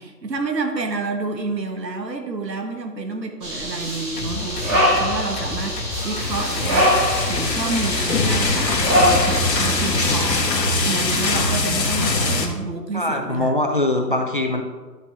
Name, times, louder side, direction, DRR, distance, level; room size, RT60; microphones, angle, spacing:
voice 1, 0.0-13.5, right 3 dB, 80° right, 5 dB, 1.5 m, -29 dB
sound 1, 3.4-10.3, equal, 15° right, 1.5 m, -23 dB
sound 2, 4.2-10.7, left 3 dB, 65° left, 1.1 m, -31 dB
sound 3, 6.2-12.5, left 3 dB, 85° left, 1.5 m, -22 dB
voice 2, 12.9-14.6, left 1 dB, 35° left, 4 dB, 0.4 m, -22 dB
11.0 x 5.2 x 3.6 m, 1.4 s
figure-of-eight pair, 145°, 49 cm